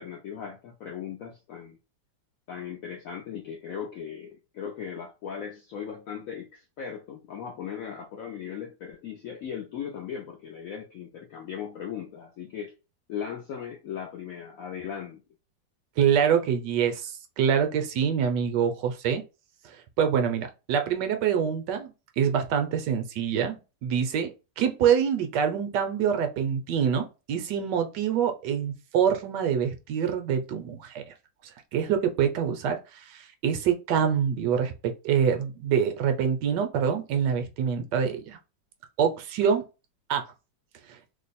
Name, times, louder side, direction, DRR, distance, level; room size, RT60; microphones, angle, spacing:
voice 1, 0.0-1.8 2.5-12.7 13.1-15.2, left 8 dB, 75° left, 0.7 m, -38 dB
voice 2, 16.0-19.2 19.6-31.0 31.7-38.4 39.0-39.6 40.1-40.2, right 7 dB, 75° right, 1.1 m, -25 dB
3.1 x 2.1 x 4.0 m
omnidirectional pair, 2.1 m